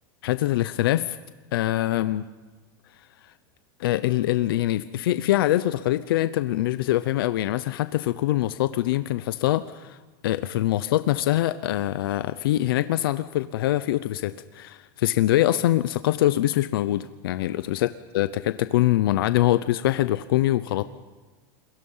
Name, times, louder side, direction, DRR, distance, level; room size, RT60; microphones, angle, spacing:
voice 1, 0.2-1.2 1.5-2.3 3.8-10.0 10.2-20.8, left 14 dB, 85° left, 13 dB, 0.8 m, -24 dB
28.0 x 22.0 x 5.7 m, 1.3 s
supercardioid pair, 165°, 12 cm